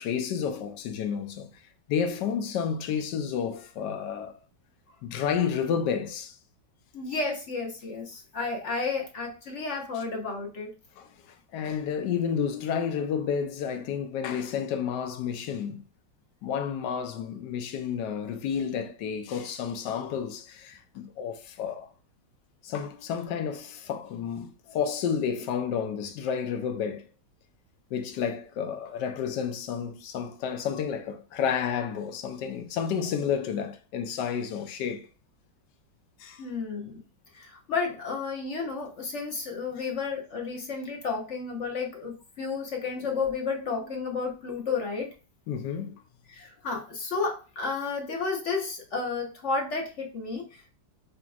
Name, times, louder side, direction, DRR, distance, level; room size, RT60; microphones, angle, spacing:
voice 1, 0.0-1.6 1.9-4.4 5.0-6.4 11.0-15.8 16.4-21.9 22.6-27.1 27.9-35.1 36.2-36.5 45.5-46.0, left 7 dB, 70° left, 1.1 m, -31 dB
voice 2, 6.9-10.7 36.4-37.0 37.3-45.1 46.3-50.7, left 4 dB, 50° left, 1.0 m, -32 dB
5.1 x 2.8 x 2.3 m
omnidirectional pair, 2.2 m